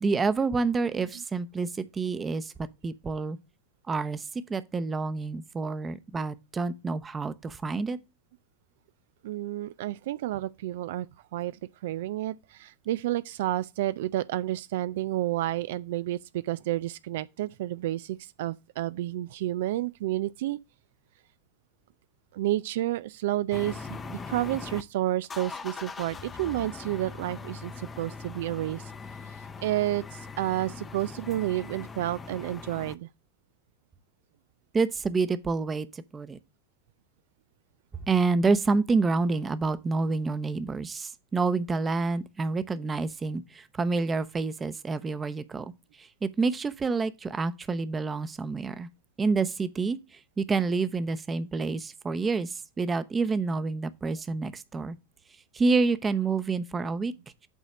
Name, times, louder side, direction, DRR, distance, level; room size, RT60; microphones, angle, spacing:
voice 1, 0.0-2.5 2.8-3.4 3.9-8.0 34.7-36.4 38.1-45.7 46.0-48.9 49.2-55.0 55.5-57.1, right 4 dB, 20° right, 0.8 m, -28 dB
voice 2, 0.9-1.2 9.2-20.6 22.3-28.9 29.2-33.1, right 14 dB, 70° right, 0.3 m, -30 dB
sound 1, 23.5-24.8 25.2-32.9, left 4 dB, 25° left, 0.7 m, -41 dB
8.3 x 4.2 x 4.9 m
hypercardioid pair, 85°, 0 cm